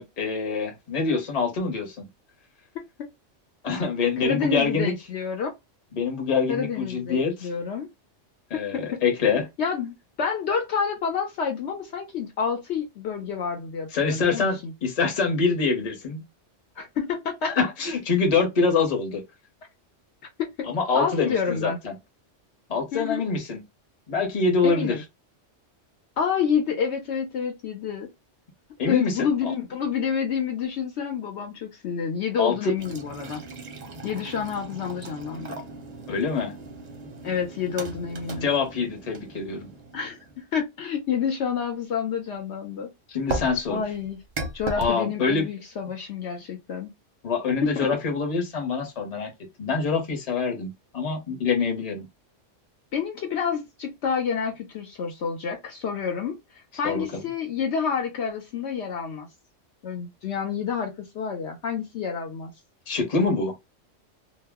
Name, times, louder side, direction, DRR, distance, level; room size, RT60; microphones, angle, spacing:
voice 1, 0.0-2.1 3.6-4.9 5.9-7.5 8.5-9.5 13.9-16.2 17.4-19.2 20.7-21.9 22.7-23.6 24.1-25.0 28.8-29.3 32.4-32.7 36.1-36.6 38.4-39.7 43.1-43.8 44.8-45.5 47.2-49.3 49.6-52.1 56.8-57.2 62.9-63.5, left 4 dB, 35° left, 0.8 m, -25 dB
voice 2, 2.7-3.1 4.2-5.5 6.5-7.9 8.5-9.0 9.6-14.7 16.8-17.5 20.4-20.7 20.9-21.8 22.9-23.2 24.6-25.0 26.2-28.1 28.9-33.4 34.0-35.6 37.2-38.5 39.9-42.9 43.7-44.2 44.5-46.9 47.6-47.9 52.9-59.3 59.8-62.5, left 6 dB, 70° left, 0.9 m, -29 dB
sound 1, 32.8-40.5 43.3-44.9, right 2 dB, 45° right, 0.6 m, -37 dB
2.3 x 2.0 x 3.4 m
omnidirectional pair, 1.3 m